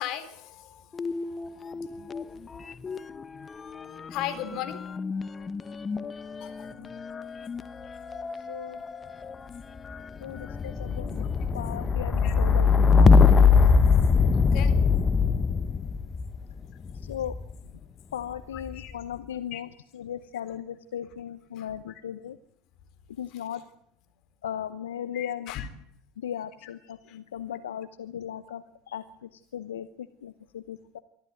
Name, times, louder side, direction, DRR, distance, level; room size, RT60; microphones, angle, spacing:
voice 1, 0.0-1.6 2.0-2.1 4.1-4.8 6.4-6.9 7.5-7.6 10.5-10.6 12.2-12.3 14.3-14.8 16.6-16.7 18.5-18.9 19.5-19.6 20.5-20.6 21.6-22.0 23.3-23.6 25.1-25.7 26.6-27.2, left 11 dB, 55° left, 10 dB, 3.7 m, -39 dB
sound 1, 0.9-2.3 2.5-17.6 18.4-18.9, left 5 dB, 25° left, 1.1 m, -23 dB
voice 2, 8.5-8.8 10.2-11.3 11.5-13.2 17.0-17.4 18.1-19.7 19.9-22.4 23.2-23.6 24.4-25.5 26.2-31.0, left 10 dB, 85° left, 13 dB, 0.9 m, -37 dB
24.5 x 14.0 x 9.4 m, 0.75 s
hypercardioid pair, 85°, 0 cm